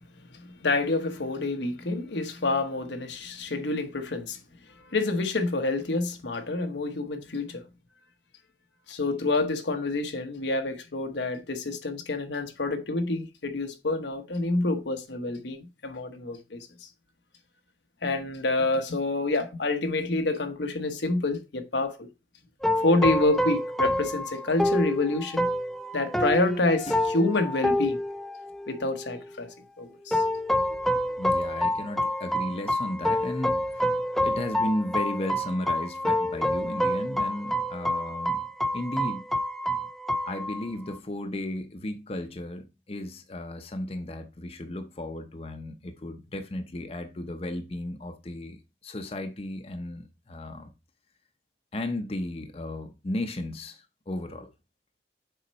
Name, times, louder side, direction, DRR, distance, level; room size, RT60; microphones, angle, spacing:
voice 1, 0.3-4.4 4.8-7.6 8.9-16.9 18.0-22.1 22.8-25.5 25.9-28.0 28.7-29.5 29.8-30.2, left 2 dB, 85° left, 1.1 m, -28 dB
sound 1, 22.6-29.2 30.1-41.0, left 1 dB, ahead, 0.3 m, -28 dB
voice 2, 31.2-33.9 34.2-38.4 38.7-39.2 40.2-50.7 51.7-54.5, left 1 dB, 35° left, 0.7 m, -34 dB
6.8 x 4.3 x 4.2 m
head